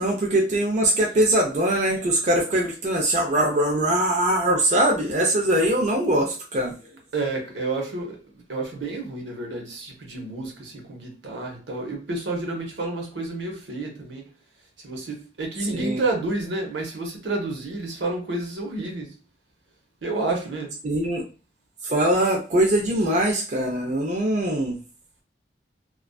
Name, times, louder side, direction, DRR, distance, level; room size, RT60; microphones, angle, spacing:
voice 1, 0.0-6.7 15.7-16.0 20.8-21.2 21.8-24.8, right 1 dB, 40° right, 0.4 m, -22 dB
voice 2, 7.1-8.2 8.5-14.2 14.8-19.1 20.0-20.7, right 2 dB, 80° right, 0.8 m, -30 dB
2.4 x 2.3 x 2.2 m
head